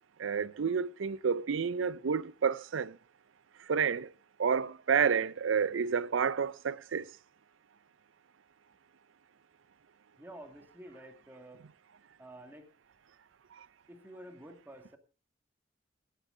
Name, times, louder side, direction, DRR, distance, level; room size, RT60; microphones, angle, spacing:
voice 1, 0.2-2.9 3.7-4.1 4.4-7.1, right 6 dB, 85° right, 0.5 m, -30 dB
voice 2, 10.2-11.6 12.2-12.7 13.9-15.0, right 1 dB, 10° right, 2.0 m, -50 dB
17.0 x 11.0 x 3.8 m
head